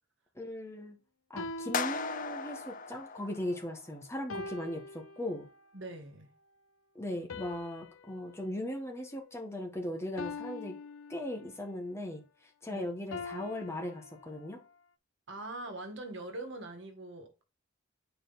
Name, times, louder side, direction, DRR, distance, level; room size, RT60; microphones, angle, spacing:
voice 1, 0.3-1.0 1.3-5.5 6.9-10.7 11.1-12.2 12.6-14.6, left 1 dB, 15° left, 1.4 m, -38 dB
sound 1, 1.4-2.7 4.3-5.7 7.3-9.6 10.2-11.7 13.1-14.7, left 3 dB, 85° left, 0.7 m, -45 dB
sound 2, 1.7-4.0, left 5 dB, 40° left, 0.6 m, -37 dB
voice 2, 5.7-6.3 12.7-12.9 15.3-17.4, right 2 dB, 60° right, 1.6 m, -42 dB
9.1 x 4.6 x 4.0 m
head